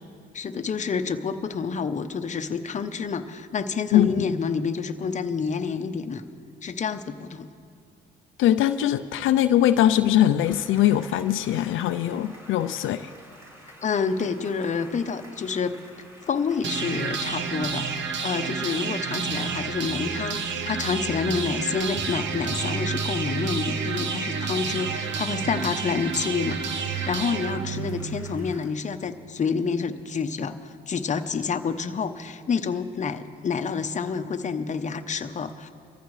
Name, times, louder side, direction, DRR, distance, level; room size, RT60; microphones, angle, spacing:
voice 1, 0.3-6.2 6.6-7.5 13.8-15.8 16.3-35.7, left 5 dB, 40° left, 7 dB, 0.8 m, -28 dB
voice 2, 3.9-4.3 8.4-13.1, left 12 dB, 80° left, 9 dB, 0.5 m, -21 dB
sound 1, 10.4-28.7, equal, 15° right, 4.5 m, -50 dB
sound 2, 16.6-28.6, right 5 dB, 70° right, 1.0 m, -30 dB
24.0 x 14.5 x 3.2 m, 2.3 s
cardioid pair, 90°, 20 cm